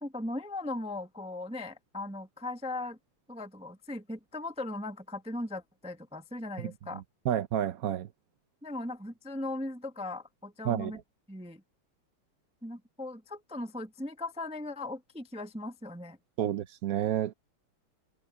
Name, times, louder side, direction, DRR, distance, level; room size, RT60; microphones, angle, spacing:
voice 1, 0.0-3.0 3.3-7.0 8.6-11.0 11.3-11.6 12.6-16.2, left 2 dB, 5° right, 0.6 m, -38 dB
voice 2, 6.9-8.1 10.6-10.9 16.4-17.3, right 11 dB, 65° right, 0.9 m, -30 dB
omnidirectional pair, 2.3 m